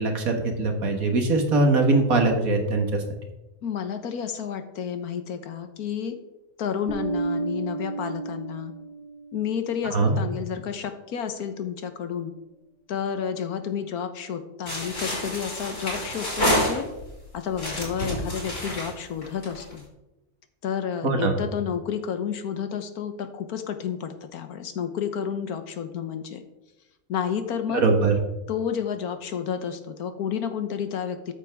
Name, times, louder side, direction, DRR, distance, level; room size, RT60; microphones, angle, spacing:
voice 1, 0.0-3.0 9.9-10.1 21.0-21.4 27.8-28.1, right 3 dB, 70° right, 3 dB, 2.0 m, -21 dB
voice 2, 3.6-6.2 6.6-8.7 9.3-12.3 12.9-16.9 17.3-19.9 20.6-26.4 27.1-27.9 28.5-31.3, left 8 dB, 85° left, 8 dB, 1.5 m, -30 dB
Bass guitar, 6.9-9.3, right 4 dB, 50° right, 2.7 m, -31 dB
sound 1, 14.7-17.1 17.5-19.8, equal, 55° left, 4.6 m, -28 dB
14.0 x 8.1 x 3.5 m, 0.98 s
omnidirectional pair, 1.6 m